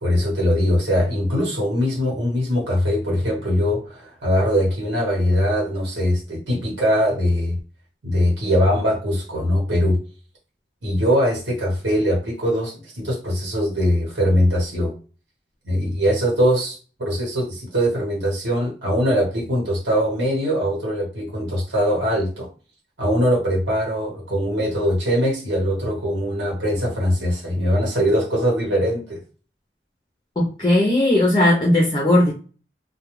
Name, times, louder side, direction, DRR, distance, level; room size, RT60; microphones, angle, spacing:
voice 1, 0.0-7.6 8.0-10.0 10.8-14.9 15.6-22.5 23.0-29.2, equal, 90° right, -3 dB, 1.1 m, -21 dB
voice 2, 30.4-32.3, left 1 dB, 25° left, -2 dB, 0.5 m, -17 dB
2.3 x 2.2 x 3.0 m, 0.36 s
head